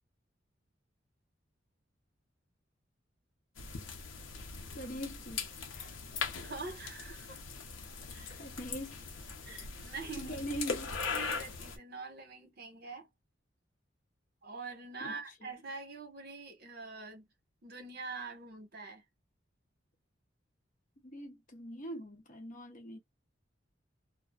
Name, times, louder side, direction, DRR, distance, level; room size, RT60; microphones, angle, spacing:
sound 1, 3.6-11.8, left 5 dB, 90° left, 0.7 m, -40 dB
voice 1, 4.8-5.5 5.7-6.0 8.3-9.0 10.2-10.9 15.0-15.1 21.0-23.0, equal, 40° left, 0.9 m, -42 dB
voice 2, 6.4-7.4 8.1-8.4 9.4-13.1 14.4-17.3 17.6-19.0, right 4 dB, 55° right, 1.1 m, -45 dB
2.5 x 2.1 x 2.3 m
head